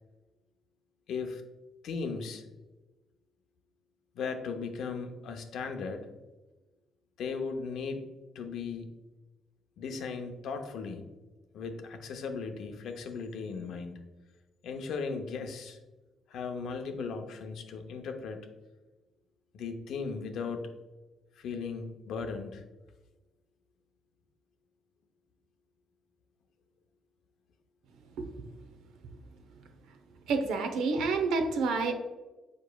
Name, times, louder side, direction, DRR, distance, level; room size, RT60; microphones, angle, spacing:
voice 1, 1.1-1.4 1.8-2.4 4.1-6.1 7.2-8.1 8.3-8.9 9.8-11.0 11.5-14.0 14.6-15.8 16.3-18.5 19.5-20.7 21.4-22.6, left 5 dB, 75° left, 6 dB, 0.6 m, -37 dB
voice 2, 30.3-31.9, right 4 dB, 90° right, 6 dB, 0.7 m, -28 dB
5.1 x 4.5 x 2.3 m, 1.2 s
cardioid pair, 90°, 0 cm